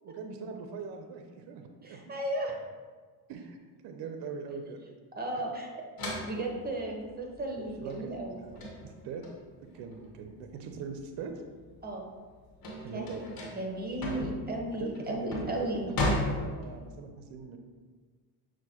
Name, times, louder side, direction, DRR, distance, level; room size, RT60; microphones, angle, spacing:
voice 1, 0.0-2.1 3.3-3.6 3.8-4.8 7.6-9.2 9.7-11.3 12.8-13.2 14.7-17.6, right 5 dB, 55° right, 5 dB, 0.5 m, -42 dB
voice 2, 1.8-2.5 5.2-5.8 6.2-8.4 11.8-12.1 12.9-13.2 13.5-15.9, right 1 dB, 20° right, 1 dB, 0.9 m, -35 dB
sound 1, 6.0-11.0 11.4-17.0, left 1 dB, 45° left, 1.1 m, -35 dB
6.0 x 2.1 x 2.9 m, 1.5 s
hypercardioid pair, 65°, 49 cm